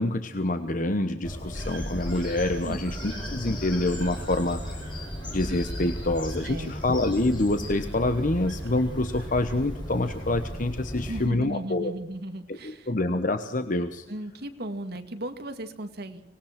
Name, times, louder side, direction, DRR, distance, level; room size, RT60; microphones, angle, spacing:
voice 1, 0.0-4.8 5.3-11.9 12.5-14.1, left 2 dB, 45° left, 8 dB, 1.2 m, -27 dB
Bird vocalization bird call bird song, 1.2-11.3, left 1 dB, 25° left, 6.1 m, -35 dB
sound 1, 1.5-10.3, right 2 dB, 80° right, 6.3 m, -46 dB
voice 2, 6.4-6.8 11.0-12.9 14.1-16.2, right 1 dB, 60° right, 8 dB, 2.1 m, -36 dB
24.5 x 19.5 x 6.0 m, 0.83 s
head